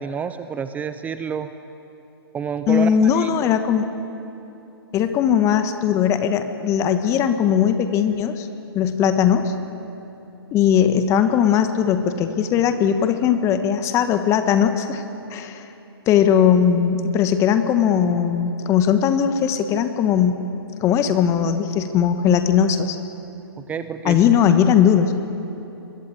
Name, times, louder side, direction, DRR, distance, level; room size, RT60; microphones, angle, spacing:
voice 1, 0.0-1.5 2.3-3.5 23.6-24.2, right 6 dB, 10° right, 10 dB, 0.6 m, -29 dB
voice 2, 2.7-3.9 4.9-8.5 8.7-9.5 10.5-15.0 15.3-15.7 16.1-20.4 20.8-23.0 24.0-25.1, left 8 dB, 20° left, 9 dB, 1.3 m, -19 dB
24.5 x 22.0 x 8.9 m, 2.9 s
figure-of-eight pair, 130°, 13 cm